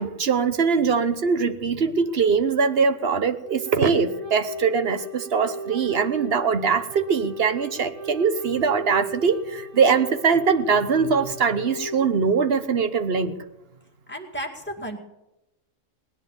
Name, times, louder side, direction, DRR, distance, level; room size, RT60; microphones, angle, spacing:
voice 1, 0.0-13.4, right 5 dB, 55° right, 10 dB, 1.2 m, -22 dB
Wind instrument woodwind instrument, 3.4-12.0, right 2 dB, 70° right, 7.8 m, -37 dB
voice 2, 14.1-15.0, right 1 dB, 10° left, 0 dB, 2.1 m, -33 dB
19.5 x 10.0 x 7.2 m, 0.93 s
omnidirectional pair, 1.3 m